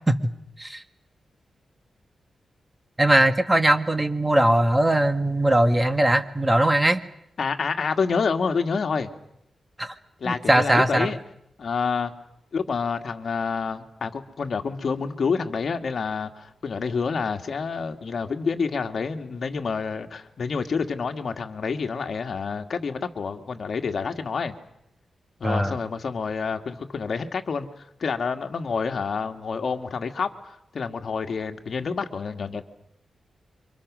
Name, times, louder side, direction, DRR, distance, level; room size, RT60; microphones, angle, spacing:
voice 1, 3.0-7.0 9.8-9.9 10.3-11.1 25.4-25.7, right 1 dB, 15° right, 9 dB, 1.7 m, -20 dB
voice 2, 7.4-9.1 10.2-11.2 11.6-12.1 12.5-24.5 25.4-27.7 28.0-32.6, left 5 dB, 60° left, 5 dB, 2.0 m, -28 dB
28.5 x 24.5 x 6.3 m, 0.77 s
wide cardioid pair, 100°, 0 cm